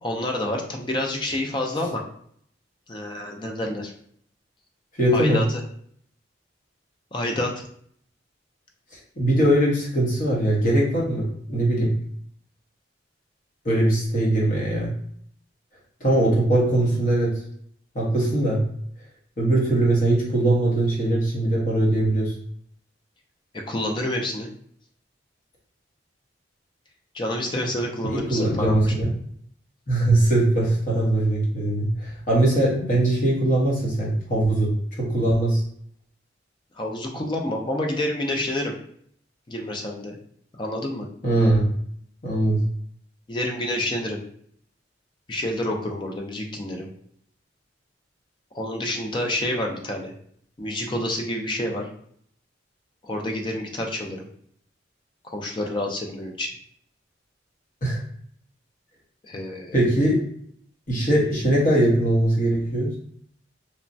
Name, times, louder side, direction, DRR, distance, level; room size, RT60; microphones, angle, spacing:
voice 1, 0.0-2.0 2.9-3.9 5.1-5.6 7.1-7.5 23.5-24.5 27.1-28.9 36.8-38.8 39.5-40.2 40.6-41.1 43.3-44.2 45.3-46.9 48.5-50.1 50.6-51.9 53.0-54.3 55.2-56.5 59.2-59.8, left 1 dB, 25° left, 1 dB, 0.4 m, -28 dB
voice 2, 5.0-5.4 9.2-11.9 13.6-14.9 16.0-17.4 17.9-18.6 19.4-22.3 28.1-29.1 29.9-35.6 41.2-41.7 42.2-42.6 57.8-58.0 59.7-60.2 60.9-63.0, right 1 dB, 45° left, -4 dB, 0.9 m, -21 dB
3.1 x 2.1 x 2.5 m, 0.64 s
head